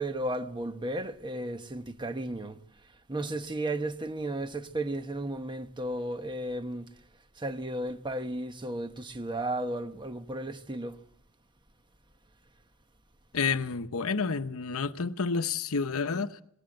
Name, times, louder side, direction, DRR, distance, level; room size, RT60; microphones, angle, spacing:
voice 1, 0.0-2.6 3.1-6.9 7.4-11.0, right 1 dB, 20° right, 1.1 m, -34 dB
voice 2, 13.3-16.4, left 5 dB, 70° left, 0.9 m, -29 dB
19.0 x 18.5 x 7.8 m
head